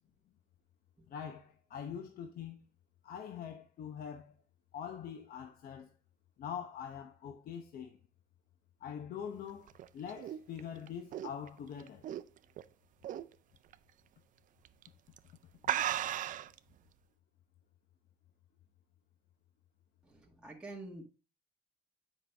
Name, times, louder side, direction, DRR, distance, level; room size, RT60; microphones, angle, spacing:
voice 1, 1.1-2.7 3.0-4.4 4.7-5.9 6.4-8.0 8.8-12.1, left 8 dB, 60° left, 0.8 m, -44 dB
sound 1, 9.5-12.6 13.0-13.3 13.7-13.8 14.6-14.9 15.2-15.3 15.6-16.6, right 11 dB, 50° right, 0.4 m, -36 dB
voice 2, 20.0-21.0, right 2 dB, 5° right, 1.6 m, -47 dB
7.6 x 5.3 x 3.4 m
cardioid pair, 110°, 17 cm